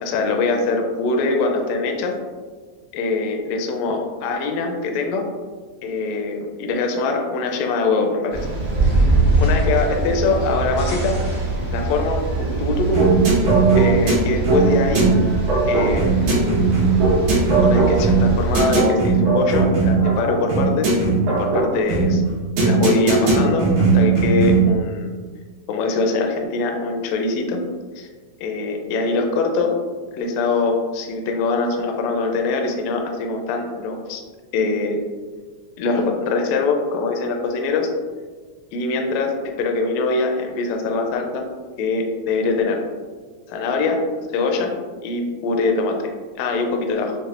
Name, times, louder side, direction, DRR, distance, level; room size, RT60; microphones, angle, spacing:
voice 1, 0.0-2.2 2.9-5.3 5.8-8.4 8.8-9.1 9.4-11.2 11.6-13.1 13.4-13.5 13.8-15.1 15.7-16.5 17.6-20.9 21.2-22.2 22.6-23.7 23.9-25.1 25.7-27.6 28.0-28.1 28.4-29.8 30.1-34.2 34.5-35.0 35.8-37.9 38.7-41.4 41.8-42.8 43.5-44.0 44.3-44.7 45.0-46.0 46.4-47.2, left 3 dB, 80° left, 3 dB, 1.6 m, -23 dB
sound 1, 8.3-18.6, right 2 dB, 50° right, 0.7 m, -23 dB
sound 2, 12.9-24.8, right 4 dB, 80° right, 2.6 m, -18 dB
6.3 x 2.4 x 2.4 m, 1.5 s
omnidirectional pair, 3.3 m